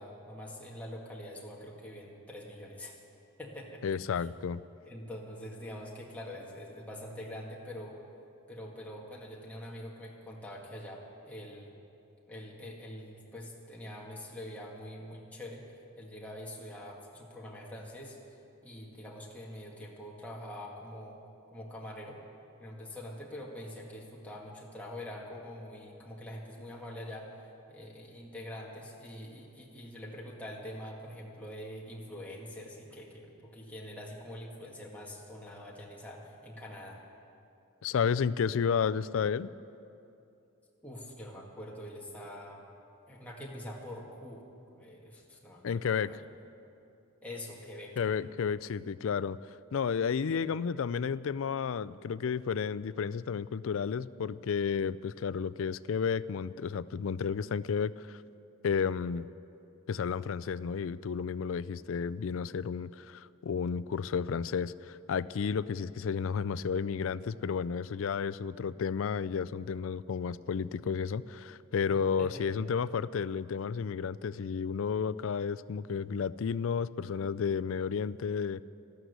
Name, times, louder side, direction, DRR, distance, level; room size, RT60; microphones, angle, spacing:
voice 1, 0.0-3.0 3.4-3.8 4.2-4.3 4.9-8.0 8.5-11.8 12.3-15.6 16.0-18.2 18.6-21.2 21.5-22.2 22.6-27.3 27.7-37.0 40.8-42.7 43.1-44.4 44.7-46.3 47.2-48.0 50.2-50.4 72.2-72.4, left 1 dB, 5° left, -3 dB, 1.9 m, -44 dB
voice 2, 3.8-4.6 37.8-39.5 45.6-46.1 48.0-49.4 49.7-58.2 58.6-59.3 59.9-78.6, left 6 dB, 65° left, 17 dB, 0.4 m, -32 dB
13.0 x 12.5 x 8.1 m, 2.7 s
head